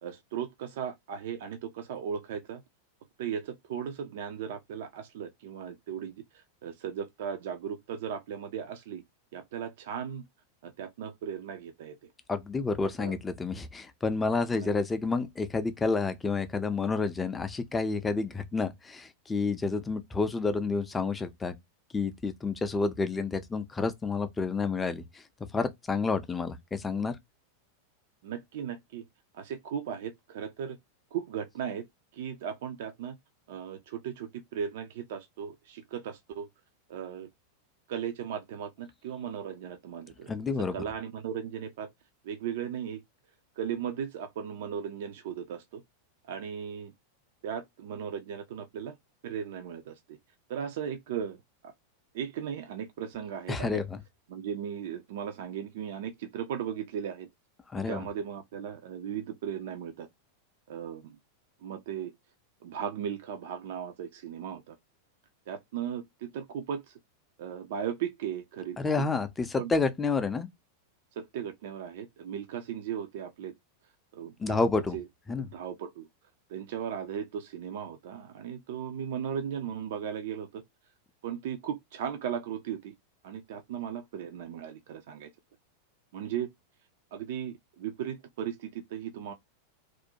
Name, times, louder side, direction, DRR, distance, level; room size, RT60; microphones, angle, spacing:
voice 1, 0.0-2.6 3.2-9.0 9.3-10.2 10.6-12.1 12.8-13.2 14.5-14.7 28.2-29.1 29.3-30.8 31.1-31.8 32.1-33.2 33.5-36.5 36.9-37.3 37.9-41.9 42.2-43.0 43.6-45.8 46.3-46.9 47.4-49.0 49.2-50.2 50.5-51.7 52.1-53.8 54.3-57.3 57.9-60.1 60.7-61.2 61.6-62.1 62.6-64.8 65.5-66.9 67.4-69.1 69.6-69.7 71.2-73.5 74.1-74.6 74.9-75.0 75.4-76.1 76.5-80.6 81.2-82.9 83.2-85.3 86.1-86.5 87.1-89.3, right 8 dB, 55° right, 0.3 m, -37 dB
voice 2, 12.3-21.5 21.9-25.2 25.5-27.2 40.3-40.8 53.5-54.0 57.7-58.1 68.8-70.5 74.4-75.0 75.3-75.5, left 4 dB, 15° left, 0.4 m, -29 dB
2.4 x 2.1 x 2.7 m
figure-of-eight pair, 90°, 0 cm